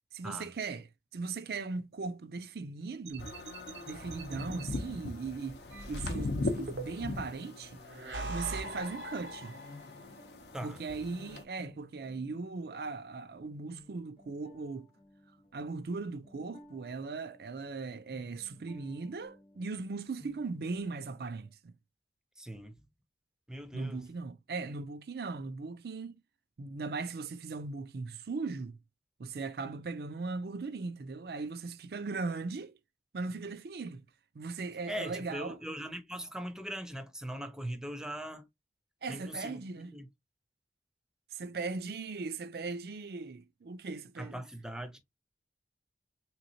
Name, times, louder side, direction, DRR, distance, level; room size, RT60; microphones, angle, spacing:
voice 1, 0.1-3.3 3.9-5.6 5.9-7.8 8.3-9.5 10.6-14.9 15.5-21.7 23.7-26.2 26.6-28.8 29.2-32.7 33.1-34.0 34.3-35.6 39.0-39.9 41.3-44.4, right 4 dB, 60° right, 0.4 m, -38 dB
sound 1, 3.1-4.8 5.7-7.2 7.8-10.0, right 2 dB, 90° right, 0.8 m, -42 dB
sound 2, 3.2-11.4, left 2 dB, 65° left, 0.6 m, -40 dB
sound 3, 9.1-21.5, left 1 dB, 35° left, 0.8 m, -59 dB
voice 2, 22.4-22.8 23.5-24.1 34.9-38.5 39.1-40.1 44.2-45.0, equal, 5° right, 0.5 m, -40 dB
3.5 x 3.0 x 2.6 m
head